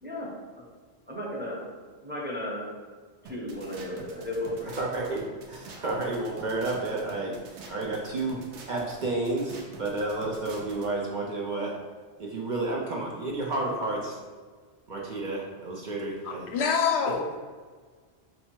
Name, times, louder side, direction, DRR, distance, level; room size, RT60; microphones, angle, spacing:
voice 1, 1.1-1.7 2.0-2.7 3.2-4.8, left 1 dB, 10° right, -5 dB, 0.7 m, -34 dB
sound 1, 3.2-10.9, right 3 dB, 85° right, 0.9 m, -46 dB
voice 2, 4.8-7.4 7.7-8.4 8.7-11.7 12.2-14.2 14.9-16.5, right 2 dB, 50° right, -3 dB, 0.7 m, -31 dB
voice 3, 16.2-17.4, left 6 dB, 80° left, 3 dB, 0.8 m, -26 dB
3.2 x 2.8 x 4.5 m, 1.5 s
omnidirectional pair, 1.1 m